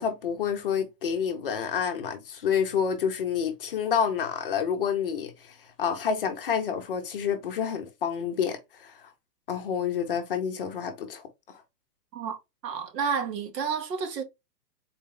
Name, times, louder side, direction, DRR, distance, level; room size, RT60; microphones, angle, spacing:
voice 1, 0.0-9.1 9.5-11.6, left 7 dB, 35° left, 0.6 m, -29 dB
voice 2, 12.6-14.2, right 6 dB, 85° right, 1.3 m, -30 dB
4.0 x 2.2 x 3.5 m
hypercardioid pair, 165°, 48 cm